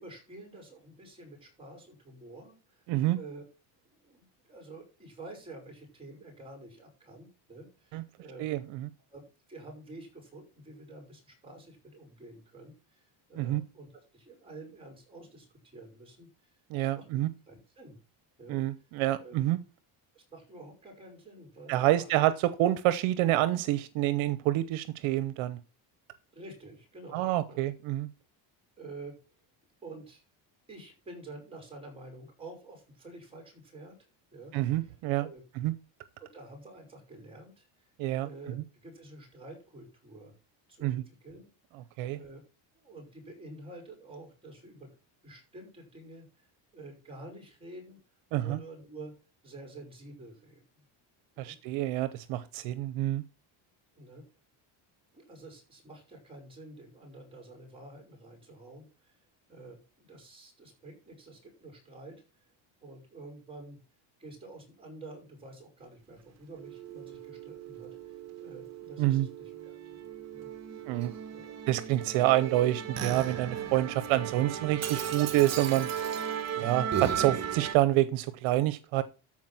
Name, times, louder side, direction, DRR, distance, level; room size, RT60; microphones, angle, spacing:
voice 1, 0.0-2.8 3.1-3.4 3.8-8.4 9.1-9.2 9.5-18.0 18.4-18.6 19.2-19.4 20.1-22.3 26.3-27.7 28.8-29.2 29.8-30.2 30.7-34.0 34.3-35.4 36.2-40.3 40.7-41.5 42.1-42.4 42.8-44.9 45.2-48.0 48.4-49.2 49.4-50.8 51.4-51.6 54.0-54.2 55.1-59.2 59.5-62.5 62.8-63.8 64.2-69.7 70.3-70.5 71.3-71.5 76.5-76.8, right 2 dB, 10° right, 5.3 m, -49 dB
voice 2, 8.4-8.9 13.4-13.6 16.7-17.3 18.5-19.6 21.7-25.6 27.1-28.1 34.5-35.2 35.6-35.7 38.0-38.3 40.8-41.0 42.0-42.2 48.3-48.6 51.4-53.2 69.0-69.3 70.9-71.1 71.7-75.9 76.6-79.0, right 15 dB, 70° right, 0.9 m, -27 dB
Musical instrument, 66.6-77.8, right 8 dB, 35° right, 1.3 m, -36 dB
13.5 x 4.7 x 6.0 m
cardioid pair, 155°, 49 cm